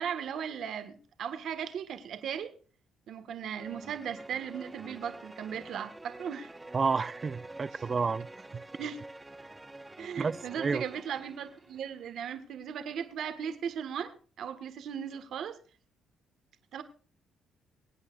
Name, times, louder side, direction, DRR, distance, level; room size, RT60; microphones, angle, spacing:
voice 1, 0.0-2.5 3.1-6.5 7.7-7.8 8.8-9.0 10.0-15.6 16.7-16.8, right 8 dB, 70° right, 1.5 m, -37 dB
sound 1, 3.6-12.1, right 2 dB, 15° right, 1.1 m, -47 dB
voice 2, 6.7-8.3 8.5-8.6 10.2-10.8, right 5 dB, 35° right, 0.5 m, -30 dB
23.5 x 9.0 x 2.4 m
cardioid pair, 90°, 0 cm